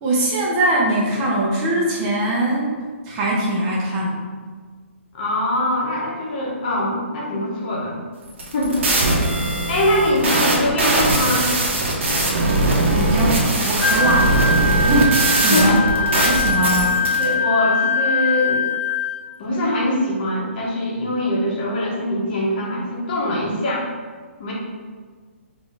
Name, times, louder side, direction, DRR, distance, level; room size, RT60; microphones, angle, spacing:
voice 1, 0.0-2.7 3.1-4.3 12.9-14.4 14.8-15.8 16.2-16.9, right 1 dB, 30° right, -4 dB, 0.9 m, -21 dB
voice 2, 5.1-8.0 8.5-8.9 9.7-11.5 15.5-16.1 16.8-16.9 17.2-18.6 19.4-23.8 24.4-24.5, left 1 dB, 45° left, -4 dB, 1.3 m, -23 dB
sound 1, 8.3-17.2, right 2 dB, 65° right, 1.2 m, -20 dB
Wind instrument woodwind instrument, 13.8-19.3, left 3 dB, 80° left, 0.3 m, -21 dB
3.8 x 2.8 x 4.0 m, 1.5 s
hypercardioid pair, 140°, 7 cm